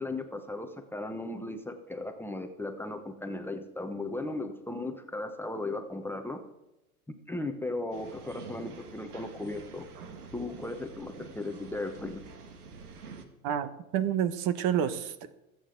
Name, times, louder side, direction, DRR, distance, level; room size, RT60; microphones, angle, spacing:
voice 1, 0.0-6.4 7.3-9.9 10.3-12.2, left 2 dB, 5° left, 5 dB, 0.9 m, -36 dB
sound 1, 7.9-13.3, right 4 dB, 85° right, 2.0 m, -47 dB
voice 2, 13.4-15.4, right 9 dB, 45° right, 13 dB, 1.2 m, -29 dB
25.5 x 8.7 x 3.9 m, 0.93 s
hypercardioid pair, 110°, 44 cm